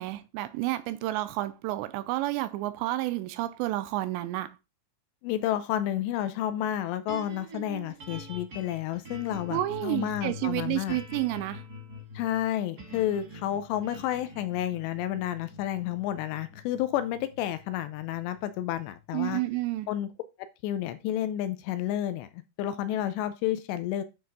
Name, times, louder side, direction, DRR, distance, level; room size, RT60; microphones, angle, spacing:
voice 1, 0.0-4.5 9.5-11.6 19.1-19.9, right 16 dB, 80° right, 2.7 m, -30 dB
voice 2, 5.2-11.0 12.1-19.4 19.9-20.1 20.6-24.0, left 12 dB, 80° left, 2.6 m, -31 dB
sound 1, 7.1-19.4, left 1 dB, 50° right, 1.2 m, -45 dB
9.4 x 3.5 x 5.4 m
omnidirectional pair, 5.3 m